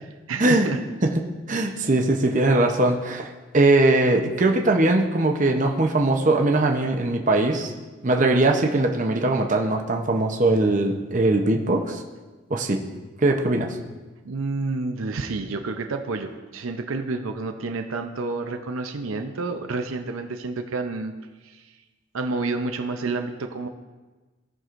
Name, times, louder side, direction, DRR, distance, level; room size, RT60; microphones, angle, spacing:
voice 1, 0.0-0.8 14.2-21.1 21.4-21.6 22.1-23.7, right 3 dB, 75° right, 5 dB, 0.6 m, -29 dB
voice 2, 1.5-7.7 8.0-12.0 12.5-12.8 13.2-13.8, right 2 dB, 35° right, 2 dB, 0.7 m, -21 dB
17.0 x 6.1 x 2.5 m, 1.3 s
head